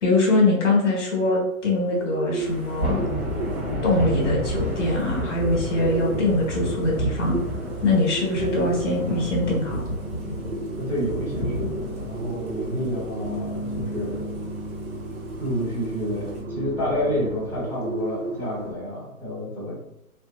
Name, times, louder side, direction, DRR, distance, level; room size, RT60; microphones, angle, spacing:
voice 1, 0.0-3.0 3.8-7.4 7.8-9.8, left 2 dB, 55° left, -1 dB, 1.2 m, -22 dB
Bird, 1.7-18.7, right 3 dB, 60° right, 0.8 m, -35 dB
Thunder / Rain, 2.4-16.4, equal, 35° right, 1.5 m, -31 dB
sound 1, 9.1-17.7, equal, 15° left, 0.7 m, -37 dB
voice 2, 10.8-11.5 12.1-14.5 15.4-19.8, equal, 5° right, -11 dB, 1.2 m, -29 dB
3.3 x 2.6 x 2.6 m, 0.88 s
figure-of-eight pair, 125°, 43 cm